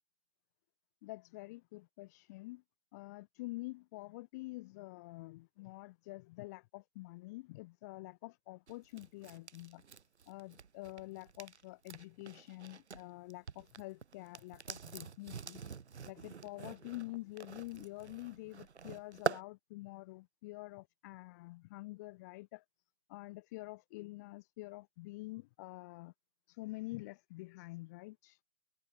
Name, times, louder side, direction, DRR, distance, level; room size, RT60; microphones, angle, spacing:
voice 1, 1.0-2.6 2.9-9.8 10.3-15.6 16.1-22.6 23.1-26.1 26.5-28.4, left 21 dB, 15° left, 1.9 m, -47 dB
sound 1, 8.7-13.0 13.3-19.4, right 6 dB, 65° right, 6.0 m, -44 dB
hypercardioid pair, 180°, 36 cm